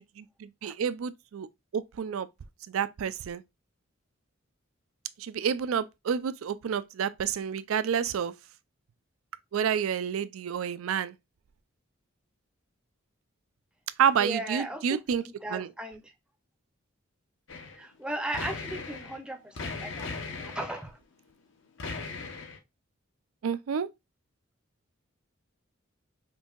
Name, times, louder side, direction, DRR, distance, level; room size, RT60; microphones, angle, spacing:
voice 1, 0.4-1.5 1.7-2.3 2.7-3.4 5.2-8.3 9.5-11.1 14.0-15.2 15.5-15.7 23.4-23.9, right 7 dB, 85° right, 0.4 m, -29 dB
voice 2, 14.2-16.1 17.7-21.0, right 1 dB, 5° right, 0.5 m, -37 dB
sound 1, 17.5-17.8 18.1-19.2 19.6-20.8 21.8-22.6, left 4 dB, 65° left, 0.8 m, -38 dB
5.3 x 2.6 x 2.3 m
head